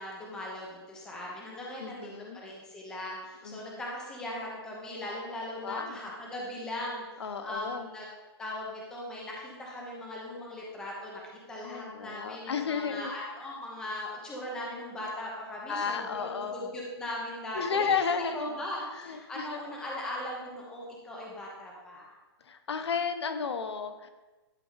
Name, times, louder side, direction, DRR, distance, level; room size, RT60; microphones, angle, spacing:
voice 1, 0.0-8.1 8.4-11.2 11.5-18.0 18.3-22.1, left 1 dB, 5° left, -3 dB, 0.9 m, -39 dB
voice 2, 1.8-2.4 3.4-3.6 5.6-6.0 7.2-7.9 11.6-13.1 15.7-16.7 17.5-18.5 18.9-19.6 22.4-24.1, left 6 dB, 75° left, 8 dB, 0.9 m, -33 dB
11.0 x 4.9 x 4.0 m, 1.2 s
hypercardioid pair, 175°, 14 cm